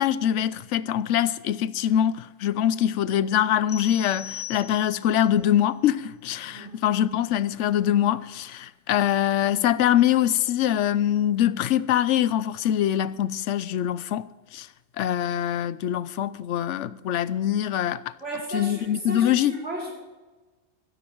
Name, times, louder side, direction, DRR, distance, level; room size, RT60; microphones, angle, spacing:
voice 1, 0.0-14.7 15.0-18.0 18.5-19.6, left 10 dB, 80° left, 0.9 m, -24 dB
sound 1, 3.7-5.2, left 9 dB, 55° left, 1.4 m, -39 dB
voice 2, 18.2-19.9, right 1 dB, 75° right, 5.0 m, -34 dB
14.5 x 13.5 x 4.5 m
omnidirectional pair, 1.2 m